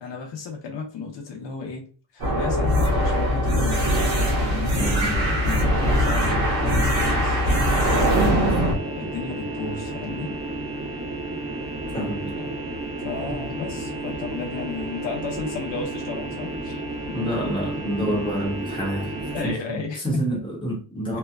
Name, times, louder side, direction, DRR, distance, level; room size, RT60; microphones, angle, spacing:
voice 1, 0.0-1.9 2.1-7.4 8.4-10.3 13.0-16.8 17.1-17.2 18.1-18.4 19.3-20.2, left 4 dB, 90° left, 0.8 m, -34 dB
sound 1, 2.2-8.7, equal, 60° right, 0.9 m, -21 dB
sound 2, 4.7-19.6, right 2 dB, 20° right, 1.2 m, -32 dB
voice 2, 4.8-5.2 8.1-8.6 11.9-12.5 17.1-21.2, right 1 dB, 10° left, 1.0 m, -28 dB
2.9 x 2.2 x 2.3 m
wide cardioid pair, 150°, 43 cm